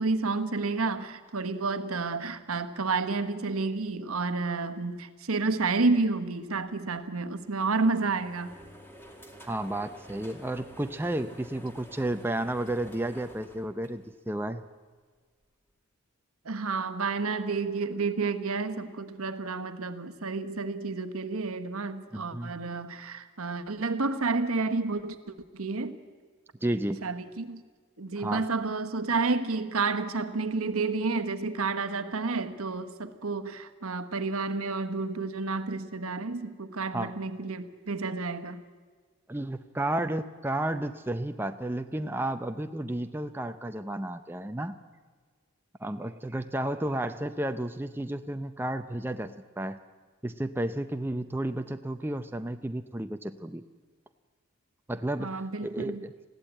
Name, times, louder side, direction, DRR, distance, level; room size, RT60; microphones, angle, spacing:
voice 1, 0.0-8.5 16.4-26.0 27.0-27.6 28.0-38.6 55.2-56.1, right 3 dB, 85° right, 10 dB, 1.2 m, -30 dB
sound 1, 7.3-14.6, equal, 10° left, 1.9 m, -50 dB
voice 2, 9.5-14.6 22.1-22.5 26.6-27.0 28.2-28.5 36.9-37.1 39.3-44.8 45.8-49.8 50.2-53.6 54.9-56.1, right 1 dB, 10° right, 8 dB, 0.5 m, -32 dB
20.5 x 15.5 x 8.9 m, 1.5 s
head